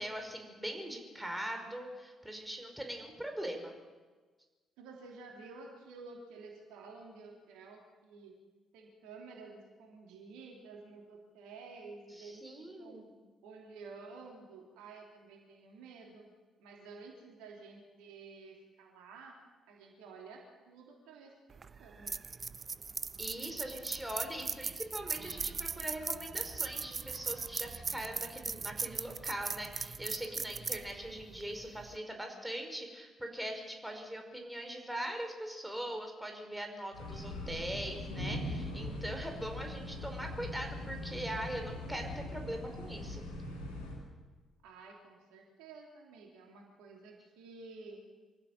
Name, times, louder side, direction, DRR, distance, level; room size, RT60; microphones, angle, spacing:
voice 1, 0.0-3.7 12.1-13.1 23.2-43.2, right 1 dB, 5° right, 4 dB, 5.2 m, -41 dB
voice 2, 4.8-8.4 8.7-13.1 13.4-16.3 16.6-19.4 19.7-22.2 44.6-48.0, right 4 dB, 65° right, 0 dB, 3.2 m, -51 dB
sound 1, 21.5-32.0, right 5 dB, 40° right, 0.8 m, -39 dB
sound 2, 36.9-43.9, left 1 dB, 80° left, 6.0 m, -41 dB
24.5 x 15.5 x 7.5 m, 1.4 s
figure-of-eight pair, 40°, 0 cm